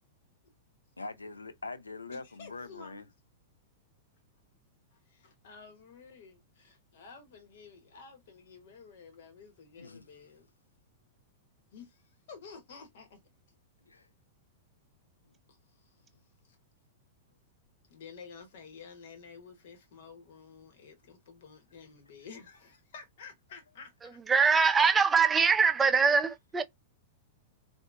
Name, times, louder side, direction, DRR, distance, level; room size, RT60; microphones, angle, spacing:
voice 1, 1.0-3.1 9.8-10.0 13.8-14.1 15.2-15.3, left 3 dB, 85° left, 0.5 m, -43 dB
voice 2, 2.1-3.1 4.9-10.5 11.7-13.2 15.5-16.1 16.4-16.6 17.9-24.5 25.0-25.2, left 5 dB, 60° left, 0.9 m, -51 dB
voice 3, 24.0-26.6, right 5 dB, 15° right, 0.5 m, -23 dB
4.3 x 2.7 x 2.2 m
figure-of-eight pair, 100°, 0 cm